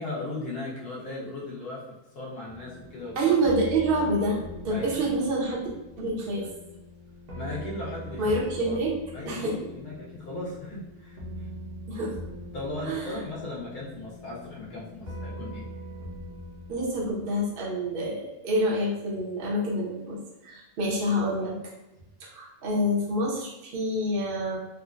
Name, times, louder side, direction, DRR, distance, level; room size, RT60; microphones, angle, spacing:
voice 1, 0.0-3.3 4.7-5.0 7.3-8.3 8.6-8.8 9.1-11.2 12.5-15.7, left 2 dB, 70° left, -6 dB, 1.4 m, -37 dB
sound 1, 2.5-17.9, equal, 70° right, 1.2 m, -42 dB
voice 2, 3.2-4.4 4.6-5.7 6.0-6.5 8.2-8.9 9.3-9.5 11.9-12.1 12.8-13.2 16.7-21.5 22.2-24.6, right 1 dB, 50° right, -4 dB, 0.7 m, -27 dB
3.7 x 2.1 x 2.5 m, 0.99 s
omnidirectional pair, 1.8 m